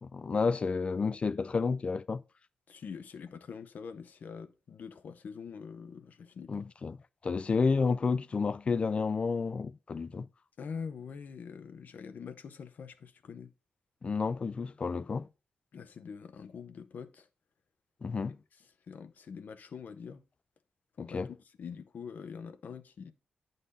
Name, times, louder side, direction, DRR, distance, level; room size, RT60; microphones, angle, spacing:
voice 1, 0.0-2.2 6.5-7.0 7.2-10.3 14.0-15.3 18.0-18.4 21.0-21.3, left 4 dB, 35° left, 0.4 m, -30 dB
voice 2, 2.7-6.7 10.6-13.5 15.7-17.3 18.9-20.2 21.0-21.2 21.6-23.1, left 6 dB, 60° left, 0.7 m, -44 dB
9.9 x 4.0 x 5.3 m
wide cardioid pair, 120°, 3 cm